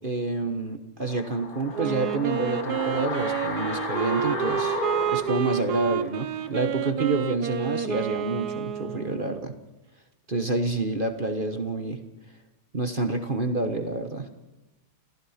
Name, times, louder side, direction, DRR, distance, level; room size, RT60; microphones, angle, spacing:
voice 1, 0.0-4.8 5.1-9.5 10.3-12.0 12.7-14.3, right 3 dB, 30° right, 7 dB, 1.2 m, -28 dB
sound 1, 1.0-6.1 6.4-6.5, left 3 dB, 70° left, 3.5 m, -33 dB
Wind instrument woodwind instrument, 1.7-9.5, right 9 dB, 60° right, 1.3 m, -29 dB
29.5 x 15.5 x 5.8 m, 1.0 s
omnidirectional pair, 2.2 m